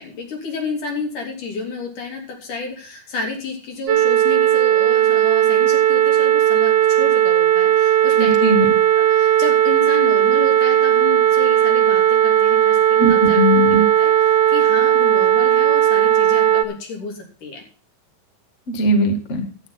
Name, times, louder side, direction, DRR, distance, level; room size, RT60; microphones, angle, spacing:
voice 1, 0.0-8.4 9.0-13.4 14.0-17.6, left 3 dB, 65° left, 1 dB, 4.6 m, -31 dB
sound 1, 3.9-16.6, right 11 dB, 55° right, 2.1 m, -16 dB
voice 2, 8.2-8.6 13.0-13.9 18.7-19.5, equal, 35° left, 5 dB, 1.2 m, -18 dB
12.0 x 9.4 x 5.8 m, 0.38 s
omnidirectional pair, 4.0 m